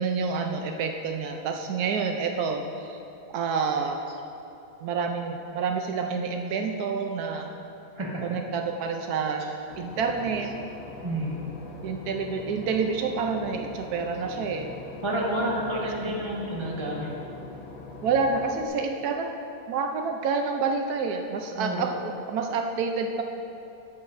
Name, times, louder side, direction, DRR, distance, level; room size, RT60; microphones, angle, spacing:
voice 1, 0.0-3.0 3.3-4.2 4.8-7.5 8.2-10.5 11.8-14.7 16.1-16.2 18.0-19.3 19.7-23.2, right 5 dB, 80° right, 4 dB, 1.1 m, -28 dB
Boat Water vehicle / Engine, 9.7-18.7, left 3 dB, 50° left, 0.7 m, -42 dB
voice 2, 11.0-11.4 15.0-17.1 21.6-21.8, right 1 dB, 20° right, -4 dB, 1.2 m, -29 dB
11.5 x 8.4 x 2.6 m, 2.7 s
omnidirectional pair, 1.6 m